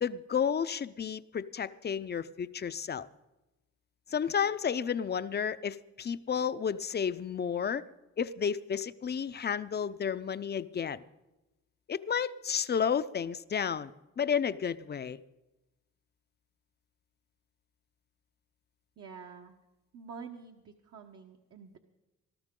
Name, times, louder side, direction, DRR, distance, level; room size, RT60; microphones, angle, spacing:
voice 1, 0.0-3.1 4.1-7.8 8.2-11.0 11.9-13.9 14.2-15.2, left 7 dB, 35° left, 0.6 m, -32 dB
voice 2, 19.0-19.5 19.9-21.8, right 6 dB, 55° right, 1.2 m, -47 dB
20.0 x 13.0 x 3.8 m
cardioid pair, 90°, 30 cm